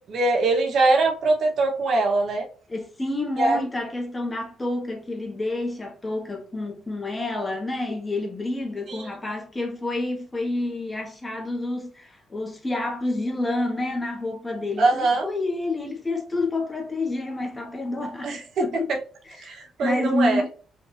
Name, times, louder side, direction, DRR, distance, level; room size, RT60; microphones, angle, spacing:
voice 1, 0.1-2.4 3.4-3.6 8.9-9.0 14.8-15.3 18.2-18.4 19.4-20.4, right 3 dB, 65° right, 1.2 m, -22 dB
voice 2, 2.7-18.9 19.2-19.5 19.8-20.5, left 2 dB, 20° left, 1.4 m, -29 dB
5.0 x 2.8 x 3.3 m
cardioid pair, 90°, 0 cm